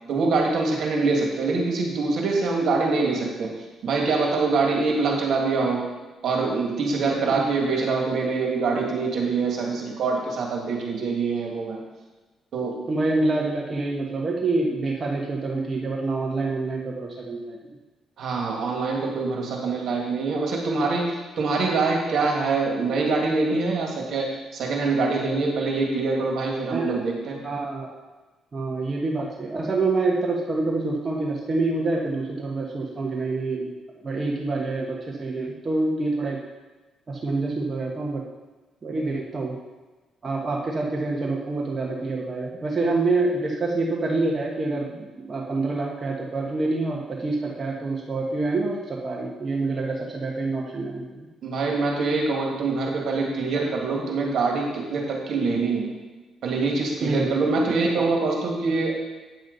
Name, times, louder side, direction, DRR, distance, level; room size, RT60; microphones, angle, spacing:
voice 1, 0.1-3.5 3.8-5.9 6.2-11.8 12.5-12.8 18.2-27.4 51.4-55.9 56.4-58.9, right 3 dB, 65° right, 0 dB, 2.0 m, -24 dB
voice 2, 12.9-17.6 26.7-27.0 27.4-27.9 28.5-33.7 34.0-36.4 37.1-38.2 38.8-39.5 40.2-51.3 57.0-57.5, right 3 dB, 35° right, -2 dB, 1.3 m, -26 dB
9.1 x 7.2 x 4.0 m, 1.2 s
cardioid pair, 90°, 0 cm